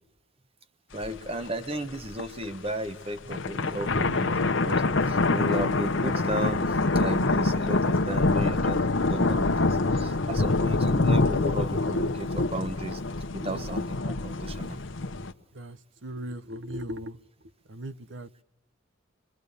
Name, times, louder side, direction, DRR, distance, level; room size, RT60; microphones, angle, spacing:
voice 1, 0.9-8.8 9.1-13.0 13.3-14.8, right 1 dB, 30° right, 10 dB, 1.3 m, -34 dB
sound 1, 1.0-1.1 1.5-1.6 2.0-2.4 3.2-15.3, left 3 dB, 70° left, 1.1 m, -25 dB
voice 2, 15.5-17.2 17.7-18.4, equal, 65° right, 14 dB, 0.9 m, -38 dB
24.5 x 23.0 x 6.8 m, 0.88 s
head